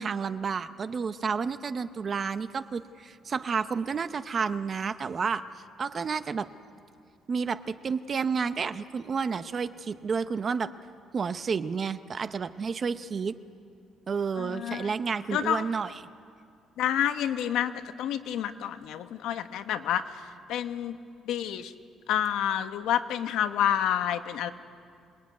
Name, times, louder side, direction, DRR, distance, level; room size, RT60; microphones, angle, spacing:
voice 1, 0.0-5.4 5.8-6.5 7.3-10.7 11.1-13.4 14.1-15.9, right 5 dB, 30° right, 12 dB, 0.7 m, -30 dB
voice 2, 14.4-14.9 15.3-15.6 16.8-17.7 18.0-20.2 20.5-21.0 21.2-21.7 22.1-24.5, left 10 dB, 75° left, 9 dB, 1.2 m, -28 dB
25.0 x 21.0 x 9.5 m, 2.3 s
cardioid pair, 180°, 0 cm